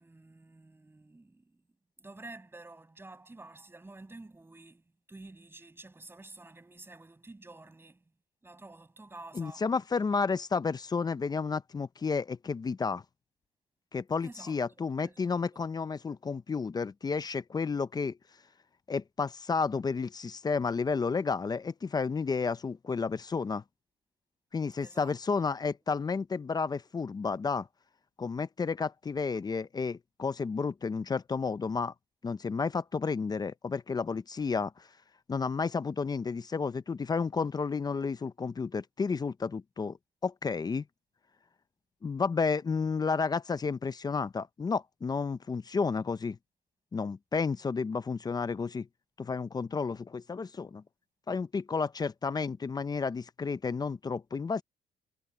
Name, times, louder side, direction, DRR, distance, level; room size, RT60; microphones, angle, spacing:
voice 1, 0.0-1.6 2.0-4.8 5.1-8.0 8.4-9.6 14.2-15.3 15.5-15.6 24.8-25.1, right 2 dB, 15° right, 6.5 m, -50 dB
voice 2, 9.3-13.0 13.9-18.2 18.9-23.6 24.5-27.7 28.2-31.9 32.2-34.9 35.3-40.0 40.2-40.8 42.0-46.4 46.9-48.9 49.2-50.8 51.3-54.6, left 5 dB, 25° left, 0.6 m, -31 dB
cardioid pair, 110°, 17 cm